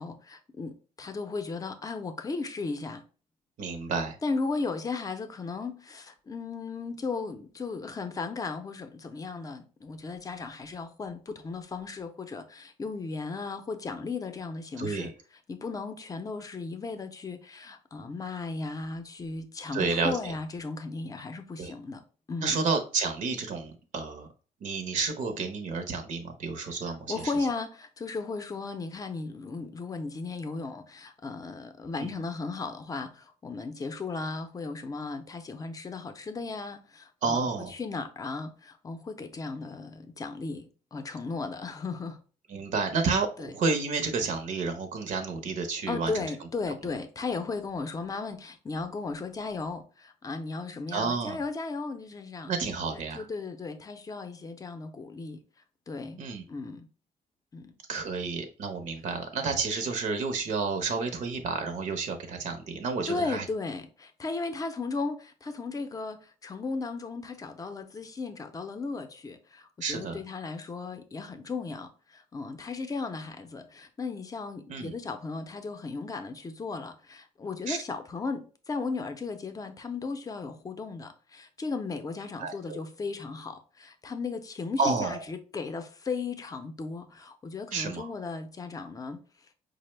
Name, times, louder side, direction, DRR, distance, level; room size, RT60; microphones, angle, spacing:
voice 1, 0.0-3.0 4.2-15.1 15.5-22.0 22.3-22.6 26.9-42.2 43.4-43.5 45.9-52.5 52.9-55.4 55.9-56.2 56.5-56.9 57.5-57.7 63.1-89.2, left 4 dB, 25° left, 0.5 m, -36 dB
voice 2, 3.6-4.2 14.8-15.1 19.7-20.1 21.6-21.7 22.4-24.3 24.6-27.3 32.0-32.1 37.2-37.7 42.5-46.2 50.9-51.4 52.5-53.3 56.2-56.4 57.9-63.5 69.8-70.2 74.7-74.9 77.7-77.8 82.4-82.8 84.8-85.2 87.7-88.1, right 4 dB, 65° right, 0.7 m, -30 dB
4.9 x 2.0 x 3.2 m
cardioid pair, 125°, 14 cm